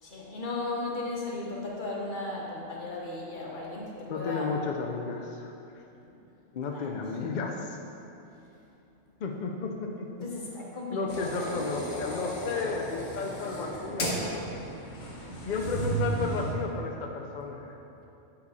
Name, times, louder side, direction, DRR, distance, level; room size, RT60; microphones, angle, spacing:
voice 1, 0.0-4.5 6.7-6.9 10.2-11.6, left 2 dB, 40° left, -3 dB, 1.2 m, -36 dB
voice 2, 4.1-5.5 6.5-7.8 9.2-10.3 10.9-14.5 15.4-17.8, left 4 dB, 60° left, 1 dB, 0.5 m, -33 dB
sound 1, 11.1-16.5, right 1 dB, 90° left, 1.6 m, -34 dB
8.2 x 5.0 x 4.0 m, 2.8 s
omnidirectional pair, 1.3 m